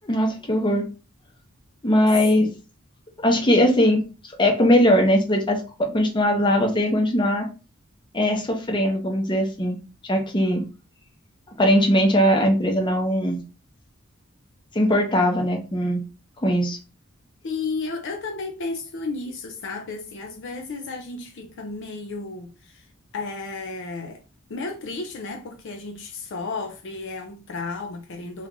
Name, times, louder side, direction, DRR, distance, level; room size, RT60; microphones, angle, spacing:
voice 1, 0.0-0.9 1.8-2.5 3.2-4.0 4.4-5.6 5.9-7.4 8.1-9.8 10.1-10.6 11.6-13.4 14.7-16.0 16.4-16.8, equal, 20° left, 0.7 m, -20 dB
voice 2, 17.4-22.8 23.1-24.2 24.5-28.5, left 3 dB, 60° left, 0.5 m, -33 dB
2.9 x 2.5 x 3.6 m
head